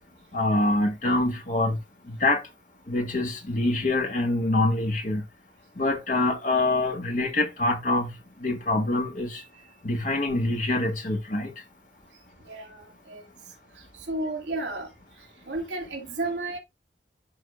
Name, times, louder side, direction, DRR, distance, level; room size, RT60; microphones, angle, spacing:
voice 1, 0.3-1.8 2.1-2.4 2.9-5.2 5.7-9.4 9.8-11.5, left 2 dB, 45° left, 1.7 m, -25 dB
voice 2, 12.4-13.2 14.1-14.9 15.5-16.6, right 2 dB, 75° right, 2.4 m, -32 dB
11.5 x 4.0 x 2.5 m
head